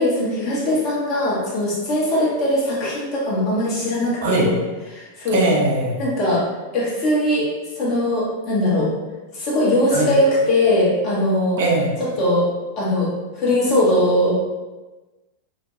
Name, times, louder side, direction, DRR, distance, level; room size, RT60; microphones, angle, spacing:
voice 1, 0.0-4.5 4.9-5.5 6.0-6.4 6.7-7.5 7.8-8.9 9.3-11.6 12.0-12.5 12.8-13.1 13.4-14.3, left 1 dB, 35° left, -6 dB, 1.1 m, -20 dB
voice 2, 5.3-6.0 9.9-10.1 11.6-11.9, right 2 dB, 55° right, -1 dB, 0.5 m, -20 dB
2.7 x 2.2 x 2.9 m, 1.2 s
figure-of-eight pair, 90°, 0 cm